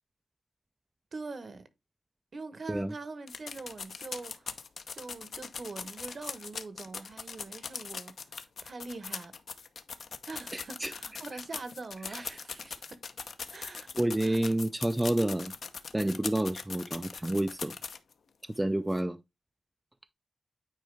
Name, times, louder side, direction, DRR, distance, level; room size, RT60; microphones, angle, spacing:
voice 1, 1.1-1.6 2.3-9.4 10.3-13.0 13.5-13.9 14.2-14.5, right 3 dB, 45° right, 1.0 m, -43 dB
sound 1, 3.3-18.1 18.5-18.6 18.9-19.0, left 5 dB, 65° left, 0.7 m, -41 dB
voice 2, 10.5-10.9 12.1-12.4 13.9-15.5 15.9-17.8 18.6-19.2, right 1 dB, 10° right, 0.3 m, -29 dB
9.3 x 4.5 x 3.3 m
wide cardioid pair, 115°, 0 cm